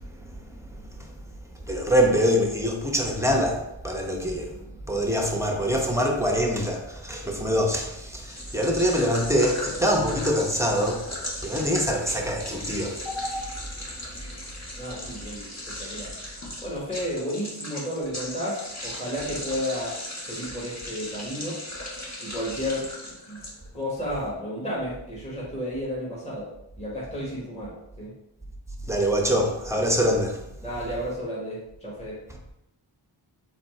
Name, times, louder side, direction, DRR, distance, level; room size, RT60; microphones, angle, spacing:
voice 1, 1.7-4.5 4.9-11.1 11.4-13.5 28.9-30.4, equal, 5° right, 1 dB, 1.0 m, -24 dB
voice 2, 4.1-4.9 14.3-14.4 14.8-16.1 16.6-21.6 22.2-22.9 23.3-23.4 23.7-26.5 26.8-28.1 30.6-32.2, equal, 15° left, -6 dB, 1.7 m, -32 dB
sound 1, 8.3-23.9, left 1 dB, 35° left, 1.4 m, -38 dB
4.1 x 3.9 x 3.2 m, 0.85 s
cardioid pair, 50°, 48 cm